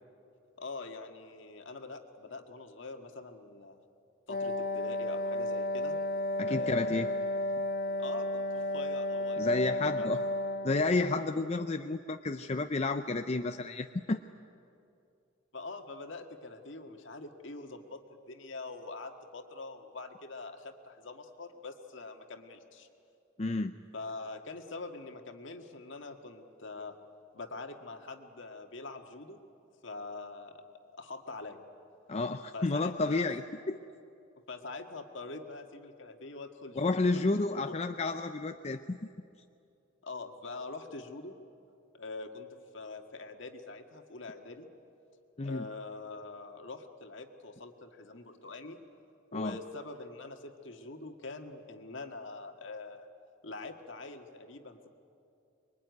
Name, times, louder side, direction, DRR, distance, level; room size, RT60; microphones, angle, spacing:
voice 1, 0.6-3.8 4.3-6.0 6.5-7.1 8.0-10.1 15.5-22.9 23.9-27.0 27.3-29.4 29.8-31.6 32.5-33.3 34.5-37.3 37.5-37.8 40.0-41.4 41.9-44.7 45.4-48.8 49.3-53.1 53.4-54.9, left 3 dB, 65° left, 5 dB, 1.9 m, -44 dB
Wind instrument woodwind instrument, 4.3-11.0, left 1 dB, 50° left, 2.0 m, -33 dB
voice 2, 6.4-7.1 9.4-10.2 10.6-14.2 23.4-23.7 32.1-33.4 33.7-33.8 36.8-39.0 45.4-45.7 49.3-49.6, left 3 dB, 30° left, 7 dB, 0.5 m, -31 dB
25.0 x 22.5 x 9.5 m, 2.6 s
head